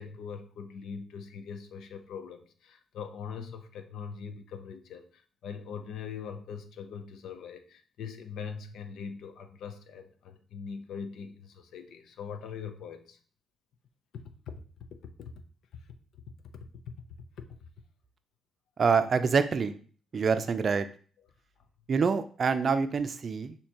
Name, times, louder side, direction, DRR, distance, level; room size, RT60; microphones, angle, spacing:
voice 1, 0.0-13.2 14.5-14.6 15.2-15.3 16.5-16.9 17.4-17.5, left 6 dB, 75° left, 8 dB, 0.6 m, -42 dB
voice 2, 18.8-19.8 20.1-20.9 21.9-23.5, right 5 dB, 45° right, 10 dB, 0.4 m, -26 dB
6.4 x 2.8 x 2.9 m, 0.43 s
cardioid pair, 90°, 0 cm